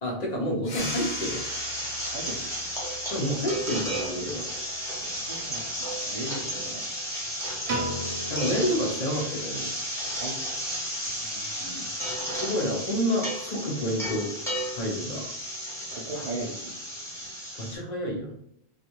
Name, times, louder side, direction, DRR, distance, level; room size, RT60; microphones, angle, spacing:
voice 1, 0.0-1.4 3.1-4.4 8.3-9.7 12.3-14.3 14.7-15.3 17.6-18.4, equal, 45° left, -1 dB, 0.7 m, -29 dB
sound 1, 0.6-5.8, left 4 dB, 75° left, 0.9 m, -43 dB
sound 2, 0.8-17.8, equal, 5° left, 0.7 m, -33 dB
voice 2, 2.1-2.5 3.5-3.6 5.1-6.8 7.1-7.2 10.2-10.4 11.2-12.4 15.9-16.7, right 2 dB, 50° right, -5 dB, 0.5 m, -39 dB
Piano, 7.7-9.9, right 1 dB, 80° right, 0.9 m, -35 dB
2.4 x 2.2 x 2.9 m, 0.74 s
omnidirectional pair, 1.1 m